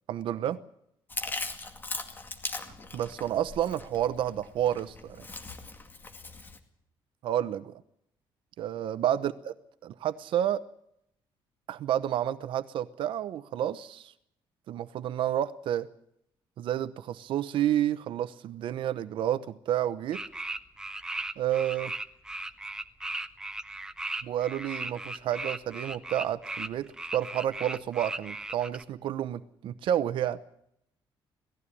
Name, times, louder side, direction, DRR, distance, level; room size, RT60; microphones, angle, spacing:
voice 1, 0.1-0.6 2.9-5.2 7.2-7.7 8.6-9.5 9.8-10.6 11.7-14.1 14.7-15.9 16.6-20.2 21.4-21.9 24.2-30.4, right 11 dB, 65° right, 13 dB, 0.9 m, -30 dB
Chewing mastication, 1.1-6.6, left 3 dB, 20° left, 2.2 m, -39 dB
sound 1, 20.1-28.8, right 2 dB, 5° right, 0.9 m, -37 dB
18.5 x 15.5 x 9.9 m, 0.74 s
cardioid pair, 165°, 9 cm